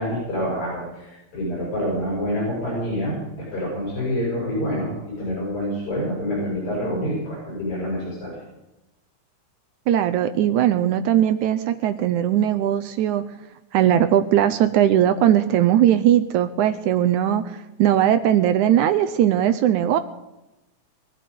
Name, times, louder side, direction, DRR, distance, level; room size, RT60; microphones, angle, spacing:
voice 1, 0.0-8.3, equal, 40° left, -5 dB, 7.9 m, -27 dB
voice 2, 9.9-13.2 13.7-20.0, right 11 dB, 75° right, 9 dB, 1.9 m, -19 dB
22.0 x 12.0 x 5.4 m, 0.95 s
omnidirectional pair, 3.9 m